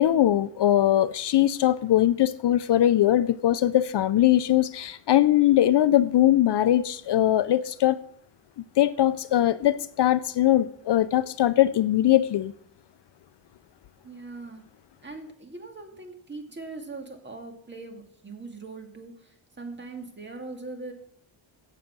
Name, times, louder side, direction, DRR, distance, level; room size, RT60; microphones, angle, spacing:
voice 1, 0.0-8.0 8.8-12.5, left 12 dB, 60° left, 14 dB, 0.5 m, -21 dB
voice 2, 14.0-14.7 15.0-20.9, right 3 dB, 25° right, 4 dB, 1.9 m, -41 dB
16.0 x 6.4 x 6.1 m, 0.66 s
wide cardioid pair, 165°, 48 cm